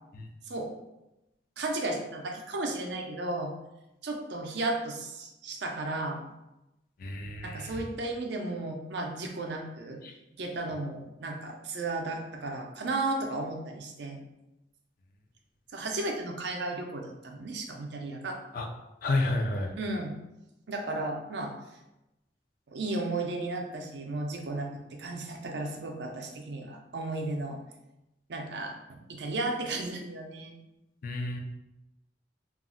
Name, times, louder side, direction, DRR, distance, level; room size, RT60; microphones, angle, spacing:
voice 1, 1.6-3.5 4.0-6.2 7.4-10.0 10.4-14.2 15.7-18.4 19.8-20.2 20.7-21.5 22.7-27.6 28.3-30.6, right 2 dB, 65° right, 2 dB, 0.5 m, -34 dB
voice 2, 7.0-7.8 10.0-10.1 18.5-18.7 19.0-19.7 31.0-31.4, left 2 dB, 50° left, 3 dB, 0.4 m, -30 dB
2.4 x 2.0 x 3.7 m, 0.92 s
head